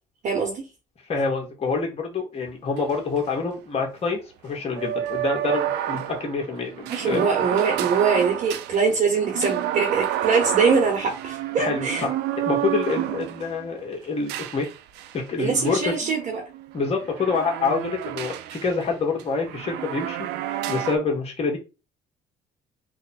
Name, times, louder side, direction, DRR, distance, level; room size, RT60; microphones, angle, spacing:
voice 1, 0.2-0.7 6.9-12.0 15.4-16.4, right 5 dB, 50° right, 2 dB, 1.1 m, -23 dB
voice 2, 1.1-7.3 11.6-12.1 12.4-14.7 15.1-15.9 16.7-21.6, left 4 dB, 35° left, 1 dB, 1.4 m, -27 dB
sound 1, 2.5-2.6 2.8-2.9 4.7-13.6 14.3-15.1 15.7-18.9 19.2-21.0, right 12 dB, 80° right, 0.4 m, -29 dB
3.2 x 2.1 x 4.1 m, 0.29 s
cardioid pair, 110°, 17 cm